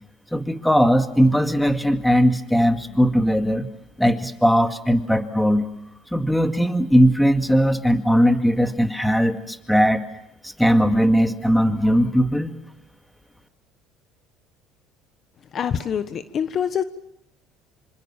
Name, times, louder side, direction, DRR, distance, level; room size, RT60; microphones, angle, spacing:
voice 1, 0.3-3.7 4.0-5.7 6.1-10.0 10.4-12.5, equal, ahead, 7 dB, 2.1 m, -19 dB
voice 2, 15.5-16.8, left 8 dB, 45° left, 11 dB, 1.3 m, -25 dB
26.0 x 26.0 x 7.3 m, 0.80 s
supercardioid pair, 105°, 0 cm